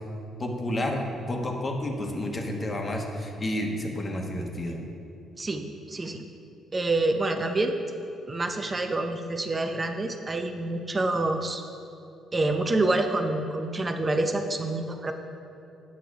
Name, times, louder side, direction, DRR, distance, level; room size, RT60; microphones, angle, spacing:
voice 1, 0.4-4.8, left 1 dB, 35° left, 1 dB, 1.3 m, -30 dB
voice 2, 5.4-6.2 6.7-7.8 8.3-11.6 12.3-15.1, right 2 dB, 30° right, 5 dB, 0.6 m, -27 dB
8.6 x 5.9 x 4.8 m, 2.7 s
supercardioid pair, 60°, 0 cm